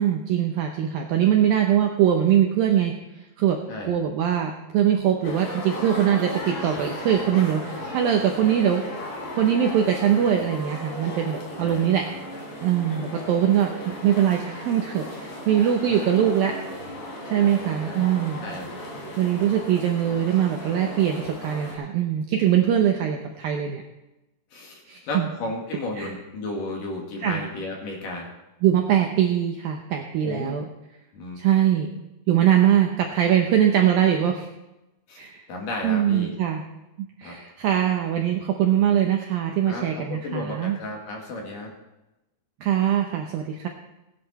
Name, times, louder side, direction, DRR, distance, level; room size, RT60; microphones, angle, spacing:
voice 1, 0.0-3.6 3.8-8.8 9.4-12.0 12.6-16.5 17.3-18.4 19.2-23.8 24.9-25.3 26.0-26.1 27.2-27.4 28.6-30.7 31.4-31.9 32.3-34.5 35.2-35.4 35.8-36.6 37.0-40.8 42.6-43.7, right 10 dB, 75° right, 3 dB, 2.1 m, -22 dB
sound 1, 5.2-21.8, left 1 dB, 70° left, 5.3 m, -36 dB
voice 2, 24.5-28.3 30.2-30.5 31.1-31.4 35.1-35.2 35.5-36.3 37.2-37.4 39.6-41.7, left 2 dB, 55° left, 0 dB, 3.1 m, -33 dB
17.0 x 11.0 x 4.2 m, 0.96 s
omnidirectional pair, 5.3 m